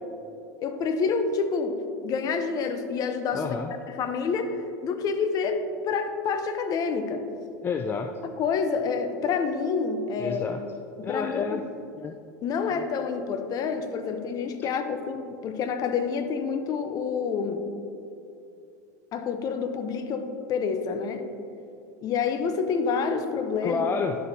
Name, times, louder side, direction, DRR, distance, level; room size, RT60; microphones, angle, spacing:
voice 1, 0.6-1.8 2.0-3.5 3.9-7.2 8.2-10.4 11.0-11.6 12.4-17.6 19.1-21.3 22.0-23.9, left 5 dB, 40° left, 8 dB, 0.7 m, -28 dB
voice 2, 3.3-3.7 7.6-8.1 10.2-10.6 11.0-11.6 11.9-12.2 12.7-12.8 14.6-14.7 23.6-24.2, left 5 dB, 20° left, 5 dB, 0.3 m, -29 dB
10.5 x 7.1 x 2.7 m, 2.7 s
hypercardioid pair, 105°, 10 cm